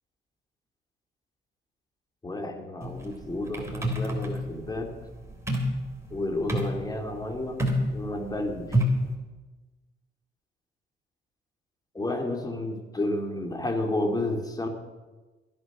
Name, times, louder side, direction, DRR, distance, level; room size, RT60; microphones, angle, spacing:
voice 1, 2.2-4.9 6.1-7.6 7.9-8.9 11.9-14.7, left 1 dB, 20° left, 4 dB, 2.6 m, -31 dB
sound 1, 2.8-9.1, equal, 15° right, 3.1 m, -29 dB
14.0 x 10.5 x 6.1 m, 1.2 s
cardioid pair, 90°, 20 cm